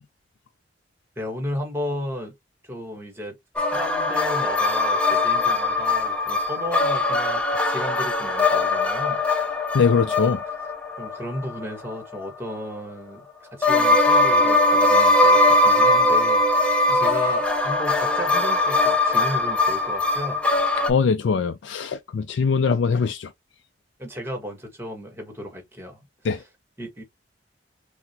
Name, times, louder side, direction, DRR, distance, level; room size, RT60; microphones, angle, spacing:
voice 1, 1.2-2.3 2.6-9.2 11.0-16.4 16.9-20.4 24.0-26.5 26.8-27.0, equal, 15° right, 1.2 m, -34 dB
sound 1, 3.6-12.2 13.6-20.9, left 2 dB, 5° left, 0.5 m, -20 dB
voice 2, 9.7-10.4 20.9-23.3 26.2-26.4, left 5 dB, 85° left, 0.4 m, -22 dB
5.9 x 2.1 x 2.8 m
head